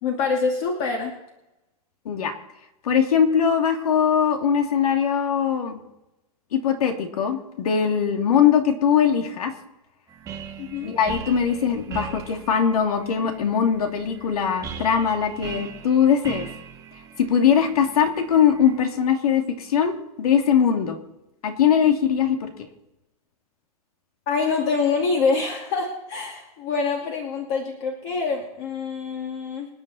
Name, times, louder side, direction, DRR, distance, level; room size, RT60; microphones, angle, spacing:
voice 1, 0.0-1.1 10.6-10.9 24.3-29.7, left 4 dB, 45° left, 1 dB, 2.5 m, -25 dB
voice 2, 2.8-5.8 6.5-9.5 10.8-16.5 17.2-21.0 21.4-22.5, left 8 dB, 80° left, 4 dB, 2.8 m, -21 dB
sound 1, 10.1-18.8, right 7 dB, 20° right, 1.3 m, -39 dB
26.5 x 9.4 x 4.2 m, 0.92 s
supercardioid pair, 155°, 19 cm